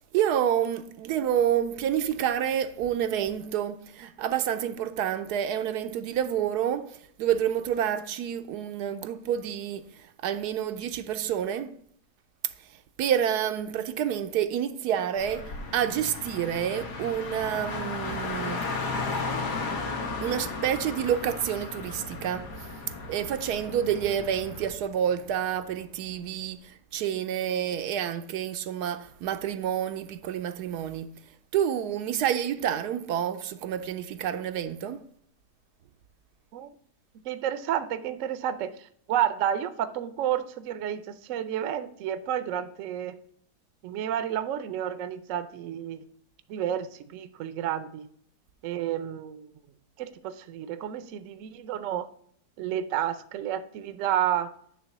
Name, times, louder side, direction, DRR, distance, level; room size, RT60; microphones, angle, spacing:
voice 1, 0.1-6.9 7.2-11.7 13.0-18.7 20.2-22.5 23.1-31.1 31.5-35.0, right 9 dB, 80° right, 1.2 m, -28 dB
Car, 15.2-24.7, left 3 dB, 90° left, 1.7 m, -35 dB
voice 2, 37.2-43.2 43.8-46.0 46.5-48.1 48.6-49.5 50.0-52.1 52.6-54.5, right 10 dB, 65° right, 0.9 m, -30 dB
9.6 x 3.5 x 5.9 m
omnidirectional pair, 1.7 m